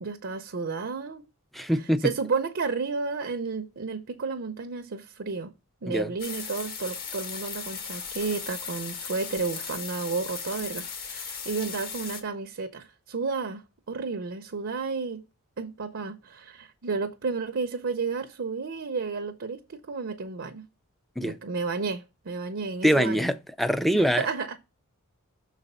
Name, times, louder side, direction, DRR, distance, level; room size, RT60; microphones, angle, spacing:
voice 1, 0.0-1.2 2.0-5.5 5.8-15.2 15.6-20.6 21.2-23.3 23.9-24.6, right 4 dB, 55° right, 0.6 m, -32 dB
voice 2, 1.5-2.1 5.9-6.1 21.2-21.4 22.8-24.3, equal, ahead, 0.4 m, -24 dB
sound 1, 6.2-12.2, left 6 dB, 40° left, 1.1 m, -37 dB
6.2 x 4.1 x 5.4 m
head